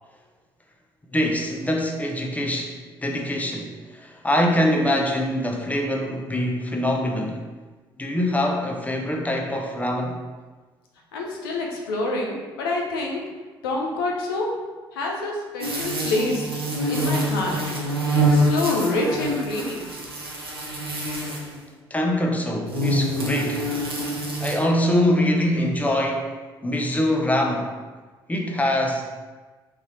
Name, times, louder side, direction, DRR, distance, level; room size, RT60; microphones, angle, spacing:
voice 1, 1.1-7.4 8.0-10.2 21.9-23.6 24.4-26.3 26.6-27.7 28.3-29.1, left 1 dB, 10° left, 1 dB, 0.6 m, -24 dB
voice 2, 11.1-13.2 13.6-14.5 14.9-16.5 16.9-17.6 18.1-19.9, left 2 dB, 75° left, -1 dB, 0.5 m, -27 dB
sound 1, 15.6-21.6 22.7-24.6, right 1 dB, 90° right, 0.4 m, -25 dB
3.9 x 2.7 x 3.0 m, 1.3 s
figure-of-eight pair, 50°, 12 cm